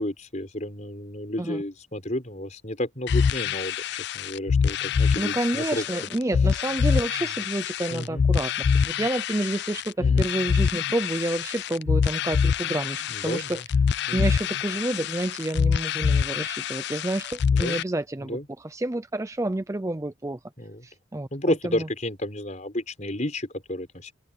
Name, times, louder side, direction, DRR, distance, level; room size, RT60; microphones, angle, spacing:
voice 1, 0.0-5.8 7.9-8.2 10.0-10.3 13.1-13.6 14.1-14.3 17.5-17.8 18.2-18.5 20.6-20.9 21.3-24.1, left 1 dB, 35° left, 5.1 m, -31 dB
sound 1, 3.1-17.8, left 6 dB, 55° left, 0.3 m, -25 dB
voice 2, 5.2-8.5 8.8-13.6 14.1-20.4 20.8-21.9, right 1 dB, 15° right, 0.4 m, -29 dB
head